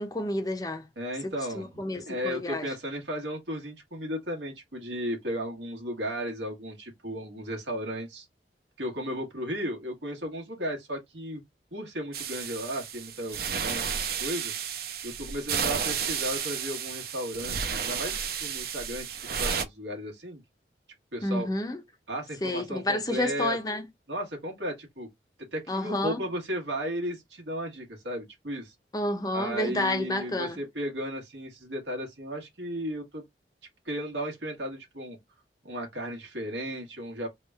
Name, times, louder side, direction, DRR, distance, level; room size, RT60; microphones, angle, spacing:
voice 1, 0.0-0.9 1.2-2.7 21.2-21.8 22.4-23.8 25.7-26.2 28.9-30.6, left 1 dB, 20° left, 0.6 m, -30 dB
voice 2, 1.0-1.6 2.1-8.3 8.8-11.4 11.7-14.5 15.0-20.4 21.1-21.5 22.1-23.6 24.1-25.1 25.5-28.7 29.3-33.2 33.8-35.2 35.6-37.3, equal, 85° right, 1.5 m, -35 dB
sound 1, 12.1-19.6, right 7 dB, 60° right, 0.7 m, -32 dB
3.5 x 2.3 x 4.4 m
head